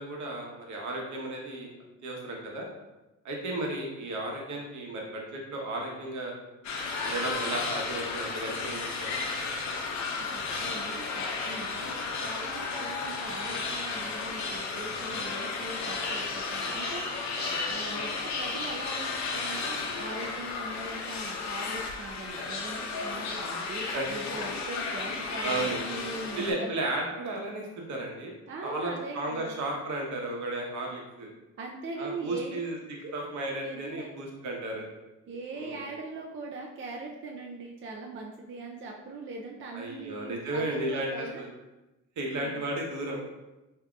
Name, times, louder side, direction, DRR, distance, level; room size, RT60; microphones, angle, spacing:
voice 1, 0.0-1.7 2.0-2.7 3.2-6.3 7.1-9.2 12.6-12.7 23.9-24.1 25.4-25.8 26.4-28.3 28.6-31.3 32.0-32.8 33.1-34.9 35.5-35.8 39.7-41.5 42.2-43.2, right 2 dB, 70° right, 0 dB, 1.0 m, -34 dB
sound 1, 6.6-26.5, left 4 dB, 65° left, 0.7 m, -33 dB
voice 2, 10.3-11.9 12.2-17.0 17.3-26.7 28.5-29.6 31.6-32.6 33.0-33.1 33.5-34.1 35.3-41.5 42.2-42.6, right 2 dB, 40° right, 0 dB, 0.5 m, -41 dB
5.8 x 2.8 x 2.3 m, 1.0 s
cardioid pair, 90°, 30 cm